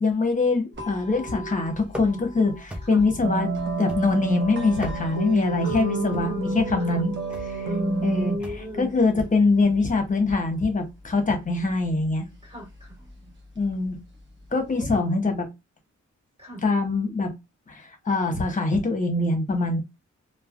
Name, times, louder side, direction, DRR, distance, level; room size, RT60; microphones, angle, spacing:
voice 1, 0.0-7.1 7.5-7.7 8.0-8.3 8.8-12.3 13.6-14.0 14.5-15.5 16.6-17.3 17.7-19.8, left 3 dB, 25° left, 0.9 m, -23 dB
sound 1, 0.7-14.7, left 1 dB, 40° right, 0.9 m, -44 dB
sound 2, 1.9-2.3 2.7-3.2 3.9-4.3 4.7-5.3 6.1-6.5 7.3-7.6 8.4-8.8, left 1 dB, 5° right, 0.5 m, -38 dB
sound 3, 3.2-8.4, right 4 dB, 65° right, 0.6 m, -31 dB
voice 2, 5.6-7.1 7.6-8.9 12.4-13.3 14.7-14.9 16.4-16.6, equal, 20° right, 1.6 m, -32 dB
3.2 x 2.1 x 2.4 m
wide cardioid pair, 155°, 29 cm